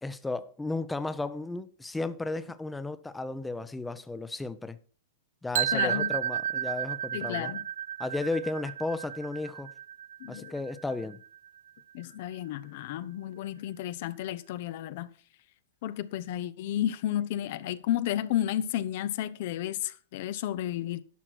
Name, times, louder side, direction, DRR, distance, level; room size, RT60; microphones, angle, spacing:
voice 1, 0.0-4.8 5.4-7.5 8.0-9.7 10.3-11.2, left 2 dB, 5° left, 0.6 m, -34 dB
sound 1, 5.5-11.5, right 10 dB, 65° right, 0.4 m, -33 dB
voice 2, 5.7-6.2 7.1-7.7 10.2-10.5 11.9-15.1 15.8-21.0, left 12 dB, 60° left, 0.7 m, -32 dB
11.0 x 5.9 x 6.1 m
hypercardioid pair, 130°, 0 cm